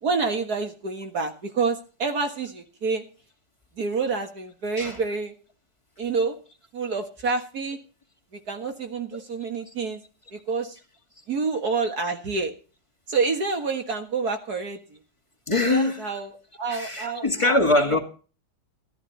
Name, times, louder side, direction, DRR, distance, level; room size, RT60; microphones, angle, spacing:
voice 1, 0.0-3.0 3.8-5.3 6.0-6.4 6.7-7.8 8.3-10.0 10.3-10.8 11.3-12.5 13.1-15.0 15.7-17.6 17.9-18.0, right 4 dB, 60° right, 2.1 m, -28 dB
voice 2, 15.5-16.1 16.7-18.0, left 2 dB, 15° left, 2.4 m, -23 dB
14.0 x 13.5 x 4.1 m
omnidirectional pair, 1.9 m